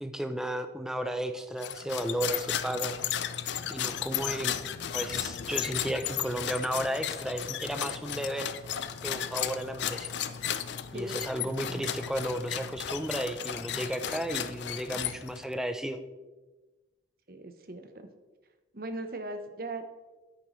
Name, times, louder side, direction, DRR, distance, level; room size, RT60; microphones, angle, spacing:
voice 1, 0.0-3.0 3.7-4.6 4.9-8.5 9.0-10.1 10.9-16.0, right 1 dB, 5° right, 8 dB, 0.5 m, -33 dB
sound 1, 1.6-15.5, left 9 dB, 80° left, 0.5 m, -34 dB
voice 2, 10.9-11.9 17.3-18.1 18.7-19.9, right 2 dB, 55° right, 7 dB, 0.9 m, -39 dB
10.5 x 9.0 x 3.2 m, 1.2 s
head